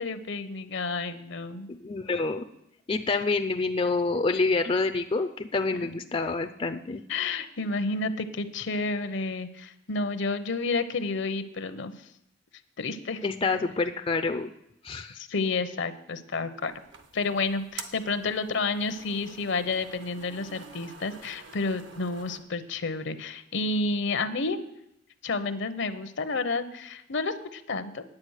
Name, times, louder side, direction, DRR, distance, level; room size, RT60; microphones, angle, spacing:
voice 1, 0.0-1.7 5.9-6.0 7.1-11.9 12.8-13.6 15.2-16.7 17.1-24.6 25.2-28.0, left 3 dB, 65° left, 11 dB, 0.8 m, -30 dB
voice 2, 1.7-2.4 2.9-7.0 13.2-14.5 14.8-15.2, left 3 dB, 25° left, 7 dB, 0.4 m, -27 dB
sound 1, 16.6-22.4, right 5 dB, 65° right, 1.0 m, -47 dB
9.8 x 8.3 x 6.4 m, 0.80 s
head